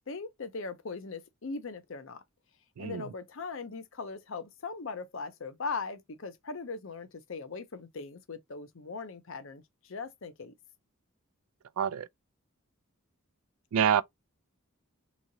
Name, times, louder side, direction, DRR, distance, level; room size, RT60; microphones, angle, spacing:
voice 1, 0.1-2.2 2.8-10.6, left 4 dB, 65° left, 0.6 m, -39 dB
voice 2, 11.8-12.1 13.7-14.0, right 8 dB, 80° right, 0.3 m, -26 dB
3.7 x 3.0 x 2.7 m
head